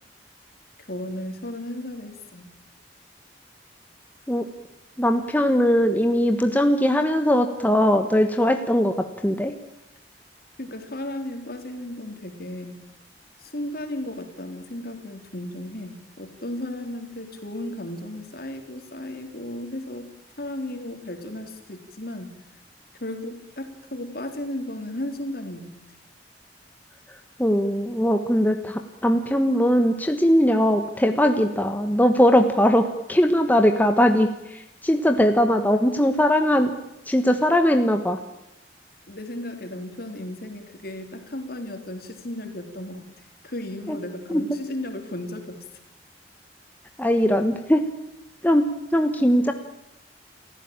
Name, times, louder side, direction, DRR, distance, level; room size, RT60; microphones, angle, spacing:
voice 1, 0.8-2.5 10.6-12.8 13.4-20.1 20.4-22.4 23.0-25.8 39.1-43.1 43.4-45.6, left 1 dB, 60° left, 5 dB, 3.7 m, -35 dB
voice 2, 5.0-8.9 9.2-9.5 27.4-36.7 37.1-38.2 43.9-44.0 44.3-44.4 47.0-47.8 48.4-49.5, equal, 10° left, 6 dB, 1.3 m, -20 dB
29.0 x 15.5 x 8.9 m, 0.89 s
head